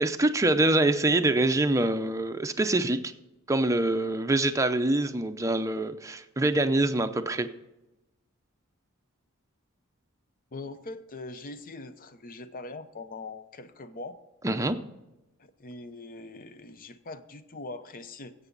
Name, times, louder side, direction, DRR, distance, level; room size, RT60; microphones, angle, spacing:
voice 1, 0.0-3.0 3.5-7.5 14.4-14.8, right 2 dB, 15° right, 8 dB, 0.6 m, -25 dB
voice 2, 10.5-14.2 15.4-18.3, left 2 dB, 40° left, 11 dB, 0.7 m, -42 dB
15.5 x 8.2 x 4.0 m, 0.97 s
head